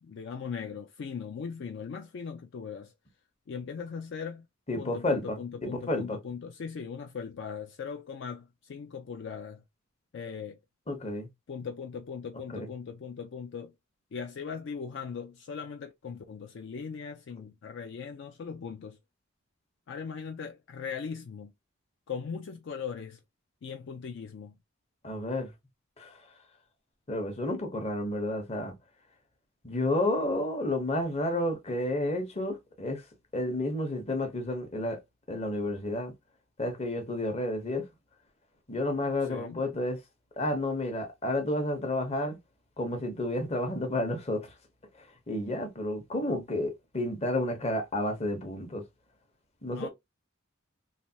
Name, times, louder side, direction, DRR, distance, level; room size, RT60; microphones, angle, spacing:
voice 1, 0.0-2.9 3.5-4.5 4.7-9.6 10.1-10.6 11.5-13.7 14.1-19.0 19.9-21.5 22.1-23.2 23.6-24.5 39.3-39.6 49.7-49.9, left 6 dB, 60° left, 0.3 m, -39 dB
voice 2, 4.7-6.2 10.9-11.3 12.5-12.7 25.0-25.5 26.0-26.3 27.1-28.8 29.6-33.1 33.3-35.0 35.3-36.1 36.6-37.9 38.7-40.0 40.4-42.4 42.8-44.6 45.0-48.8 49.6-49.9, left 1 dB, 30° left, 0.8 m, -31 dB
3.2 x 2.3 x 2.7 m
head